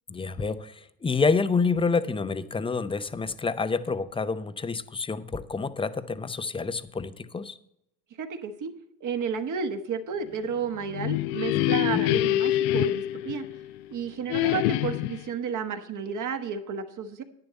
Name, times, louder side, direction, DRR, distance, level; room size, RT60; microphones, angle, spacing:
voice 1, 0.1-7.6 11.5-12.1, left 4 dB, 10° left, 12 dB, 0.5 m, -28 dB
voice 2, 8.2-8.7 9.0-13.4 13.9-17.2, right 6 dB, 40° right, 7 dB, 1.3 m, -32 dB
sound 1, 10.7-13.8 14.3-15.3, left 16 dB, 65° left, 0.6 m, -26 dB
10.5 x 9.6 x 4.1 m, 0.79 s
supercardioid pair, 85°, 46 cm